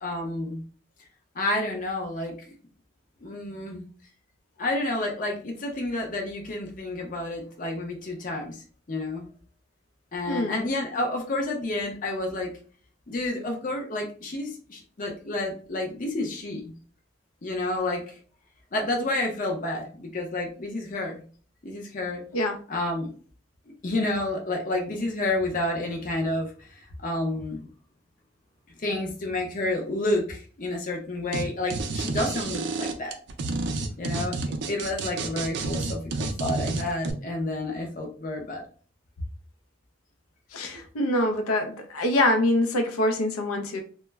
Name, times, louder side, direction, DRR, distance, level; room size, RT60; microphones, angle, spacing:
voice 1, 0.0-0.6 1.4-2.5 3.2-3.8 4.6-8.6 8.9-9.3 10.1-12.5 13.1-16.7 17.4-18.1 18.7-21.2 21.6-22.2 22.7-23.1 23.8-27.6 28.8-33.2 34.0-34.4 34.7-38.6, left 2 dB, 40° left, 1 dB, 0.5 m, -30 dB
voice 2, 10.3-10.6 22.3-22.6 40.5-43.8, left 1 dB, 85° left, 5 dB, 0.5 m, -25 dB
sound 1, 31.3-31.4 31.7-37.1, right 3 dB, 55° right, 0.3 m, -30 dB
2.1 x 2.0 x 3.3 m, 0.41 s
head